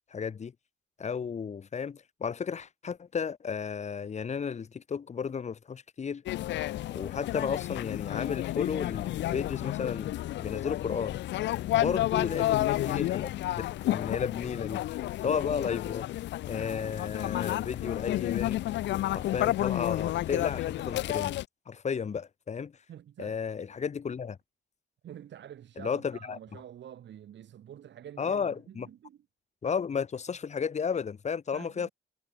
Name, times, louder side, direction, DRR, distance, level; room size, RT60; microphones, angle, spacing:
voice 1, 0.1-0.5 1.0-6.2 6.9-11.2 11.7-13.3 13.6-14.8 15.2-16.1 16.5-18.6 19.1-21.4 21.7-22.7 23.2-24.4 25.8-26.4 28.2-28.9 29.6-31.9, left 6 dB, 35° left, 1.0 m, -33 dB
sound 1, 6.3-21.4, left 15 dB, 65° left, 0.4 m, -31 dB
voice 2, 11.7-12.0 22.9-23.4 25.0-29.2 31.5-31.9, right 10 dB, 65° right, 2.4 m, -47 dB
cardioid pair, 90°, 20 cm